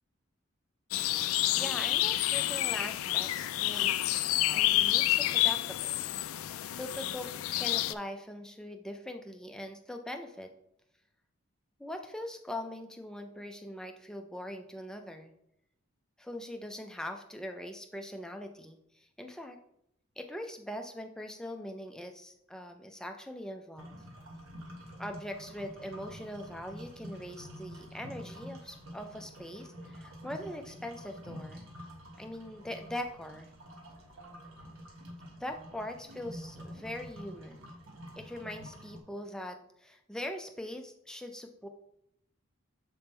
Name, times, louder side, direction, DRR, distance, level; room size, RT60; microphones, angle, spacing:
sound 1, 0.9-7.9, left 15 dB, 85° left, 0.3 m, -29 dB
voice 1, 1.5-4.2 4.5-6.0 6.7-7.3 7.6-10.5 11.8-15.3 16.2-19.6 20.2-24.0 25.0-31.7 32.2-33.5 35.4-37.8 38.2-41.7, left 1 dB, 5° left, 4 dB, 0.4 m, -42 dB
sound 2, 23.8-39.0, equal, 75° right, 1.2 m, -48 dB
6.9 x 3.5 x 4.3 m, 0.77 s
head